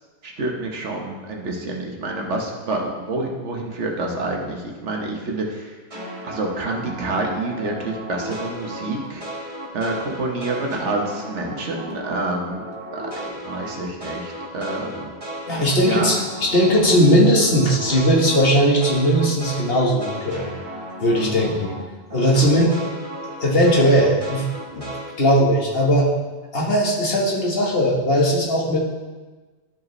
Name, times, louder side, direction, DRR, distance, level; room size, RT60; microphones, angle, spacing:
voice 1, 0.2-5.7 6.2-9.2 9.7-12.6 12.9-13.1 13.5-15.1 15.8-16.1 21.1-21.6, right 2 dB, 85° right, 1 dB, 1.4 m, -28 dB
sound 1, 5.9-12.2 12.5-21.8 22.1-25.1, right 1 dB, 30° right, 1.4 m, -34 dB
voice 2, 15.5-20.5 21.0-21.7 22.1-22.7 23.2-24.9 25.2-26.1 26.5-28.8, equal, 55° left, -3 dB, 1.6 m, -18 dB
12.5 x 4.9 x 3.2 m, 1.3 s
omnidirectional pair, 1.2 m